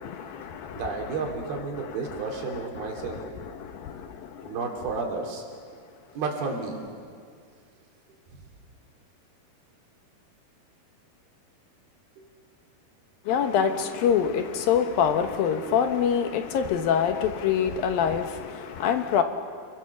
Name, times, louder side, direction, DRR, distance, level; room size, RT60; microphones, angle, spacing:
voice 1, 0.0-0.8 2.1-2.2 2.8-3.3 3.6-4.3 13.3-19.2, left 8 dB, 70° left, 7 dB, 2.7 m, -25 dB
voice 2, 0.7-3.2 4.4-5.4 6.1-6.8, right 4 dB, 70° right, 1 dB, 4.9 m, -31 dB
29.5 x 21.5 x 7.0 m, 2.2 s
omnidirectional pair, 4.7 m